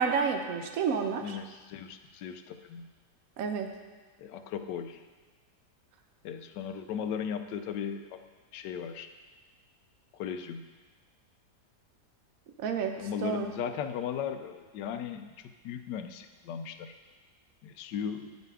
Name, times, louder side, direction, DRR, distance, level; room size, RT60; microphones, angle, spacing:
voice 1, 0.0-1.4 3.4-3.7 12.6-13.5, right 6 dB, 65° right, 5 dB, 1.0 m, -30 dB
voice 2, 1.2-2.9 4.2-5.1 6.2-8.2 8.5-9.1 10.1-10.6 13.0-16.9 17.6-18.3, left 8 dB, 85° left, 9 dB, 1.2 m, -37 dB
9.9 x 6.6 x 3.5 m, 1.3 s
omnidirectional pair, 1.8 m